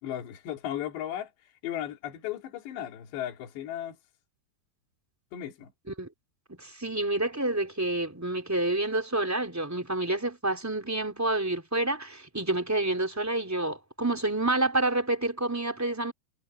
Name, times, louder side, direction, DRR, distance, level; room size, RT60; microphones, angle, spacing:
voice 1, 0.0-4.0 5.3-5.7, left 11 dB, 80° left, 4.7 m, -36 dB
voice 2, 6.6-16.1, right 2 dB, 5° right, 3.2 m, -28 dB
omnidirectional pair, 4.9 m